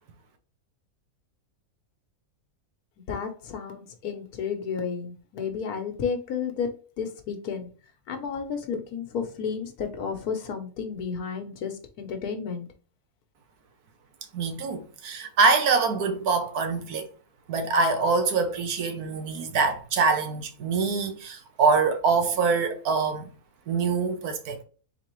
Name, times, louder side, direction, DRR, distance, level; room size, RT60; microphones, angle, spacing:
voice 1, 3.1-6.7 7.0-7.7 8.1-12.7, left 6 dB, 80° left, 1.4 m, -32 dB
voice 2, 14.3-17.1 17.5-23.3 23.7-24.6, right 4 dB, 90° right, 1.4 m, -24 dB
4.2 x 3.8 x 3.0 m
omnidirectional pair, 1.6 m